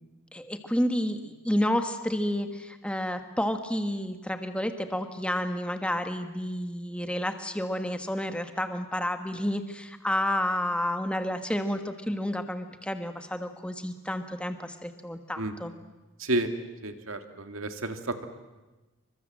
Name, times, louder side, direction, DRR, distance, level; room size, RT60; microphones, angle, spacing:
voice 1, 0.3-15.7, left 1 dB, 5° left, 7 dB, 1.5 m, -30 dB
voice 2, 16.8-18.2, right 2 dB, 75° right, 7 dB, 2.3 m, -31 dB
28.5 x 24.5 x 7.7 m, 1.1 s
head